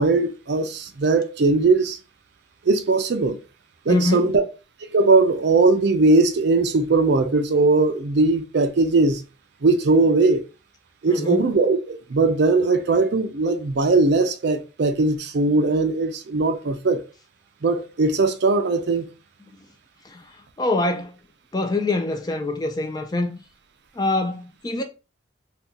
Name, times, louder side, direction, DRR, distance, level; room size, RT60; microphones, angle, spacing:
voice 1, 0.0-2.0 2.7-3.4 3.9-4.4 4.9-9.2 9.6-10.4 11.0-17.0 17.6-19.1, right 3 dB, 55° right, 0.4 m, -19 dB
voice 2, 3.9-4.4 11.1-11.5 20.1-20.2 20.6-21.2 21.5-23.4 24.0-24.8, left 2 dB, 20° left, 0.3 m, -24 dB
2.7 x 2.2 x 3.6 m
head